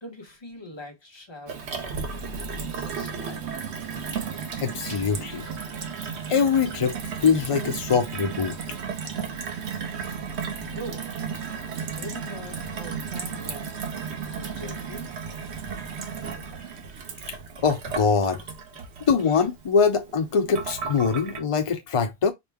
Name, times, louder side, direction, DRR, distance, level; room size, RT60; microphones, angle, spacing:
voice 1, 0.0-1.8 2.6-3.6 10.6-11.1 11.9-13.7 14.3-15.1, equal, 25° left, 1.0 m, -42 dB
Gurgling / Water tap faucet / Sink (filling or washing), 1.5-21.4, right 6 dB, 80° right, 1.1 m, -34 dB
voice 2, 4.6-5.5 6.3-7.0 7.2-8.6 17.6-18.4 19.1-22.3, left 6 dB, 60° left, 0.3 m, -23 dB
4.9 x 2.1 x 3.4 m
omnidirectional pair, 1.1 m